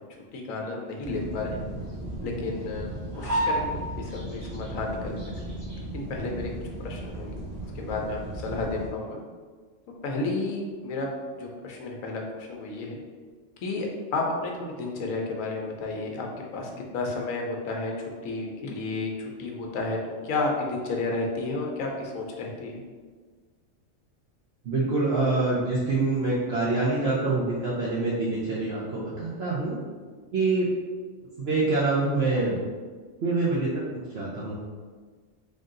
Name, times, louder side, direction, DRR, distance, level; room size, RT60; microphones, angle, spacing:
voice 1, 0.3-1.6 2.2-3.7 4.3-5.1 5.9-6.5 6.8-7.4 7.8-9.2 10.0-11.1 11.4-12.2 12.5-13.0 13.6-16.3 16.5-17.9 18.2-19.1 19.4-20.0 20.2-22.8, left 3 dB, 85° left, 0 dB, 1.1 m, -31 dB
sound 1, 1.0-8.9, right 1 dB, 35° right, 1.1 m, -34 dB
voice 2, 24.6-29.8 30.3-30.7 31.4-32.5 33.2-33.8 34.1-34.5, right 3 dB, 60° right, -7 dB, 0.9 m, -25 dB
3.8 x 2.7 x 3.7 m, 1.5 s
omnidirectional pair, 1.3 m